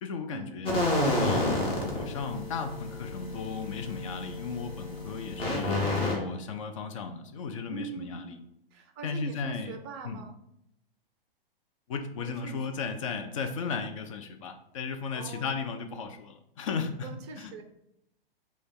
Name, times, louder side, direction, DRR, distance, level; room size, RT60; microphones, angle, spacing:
voice 1, 0.0-8.4 9.0-9.8 10.0-10.2 11.9-17.6, left 5 dB, 35° left, 6 dB, 0.4 m, -35 dB
sound 1, 0.7-6.1, left 1 dB, 20° left, 1.0 m, -30 dB
voice 2, 7.7-8.4 8.7-10.4 12.2-12.6 15.1-15.8 17.0-17.6, right 5 dB, 25° right, 6 dB, 0.5 m, -42 dB
5.0 x 2.2 x 3.7 m, 0.78 s
figure-of-eight pair, 110°, 30 cm